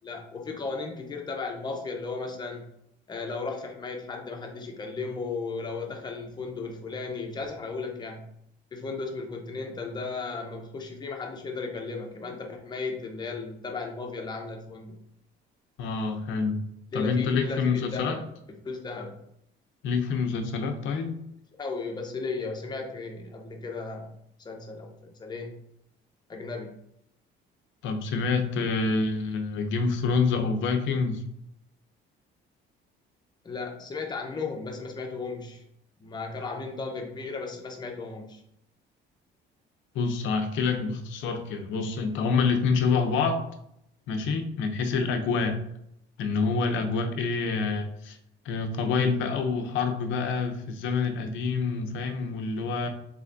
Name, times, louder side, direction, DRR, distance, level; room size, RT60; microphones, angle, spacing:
voice 1, 0.0-2.6 3.1-8.3 8.7-15.0 16.9-18.3 18.6-19.2 21.6-24.1 24.4-25.6 26.3-26.7 33.4-35.6 36.0-38.4, left 4 dB, 20° left, 2 dB, 0.6 m, -35 dB
voice 2, 15.8-16.6 16.9-18.2 19.8-21.2 27.8-31.2 39.9-43.5 44.1-45.6 46.2-48.2 48.4-52.9, left 4 dB, 75° left, 6 dB, 0.6 m, -27 dB
3.4 x 3.3 x 2.6 m, 0.75 s
cardioid pair, 140°, 20 cm